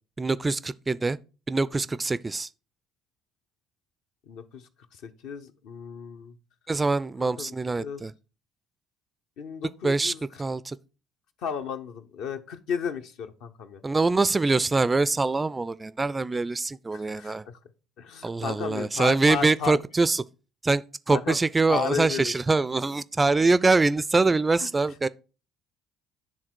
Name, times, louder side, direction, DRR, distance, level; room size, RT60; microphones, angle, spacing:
voice 1, 0.2-1.2 1.5-2.5 6.7-8.1 9.8-10.1 10.4-10.8 13.8-17.4 18.2-20.2 20.6-25.1, right 3 dB, 20° right, 0.3 m, -24 dB
voice 2, 4.3-4.6 5.0-6.3 7.2-8.0 9.4-10.2 11.4-13.8 16.9-17.6 18.0-19.8 21.1-21.4 21.7-22.3 24.6-24.7, left 7 dB, 60° left, 0.7 m, -34 dB
10.0 x 3.6 x 4.5 m
figure-of-eight pair, 50°, 0 cm